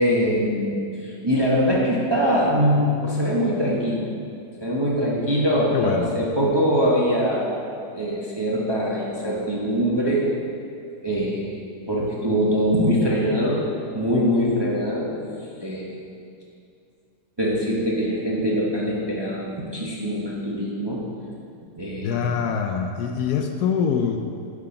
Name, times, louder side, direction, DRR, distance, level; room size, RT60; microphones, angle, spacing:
voice 1, 0.0-4.0 4.6-7.7 7.9-10.3 11.0-11.6 11.9-13.7 13.9-15.1 15.6-15.9 17.4-21.0 21.8-22.1, equal, 20° right, -5 dB, 0.7 m, -23 dB
voice 2, 5.7-6.1 22.0-24.2, left 7 dB, 75° left, 5 dB, 1.0 m, -24 dB
8.8 x 4.8 x 5.7 m, 2.4 s
omnidirectional pair, 1.8 m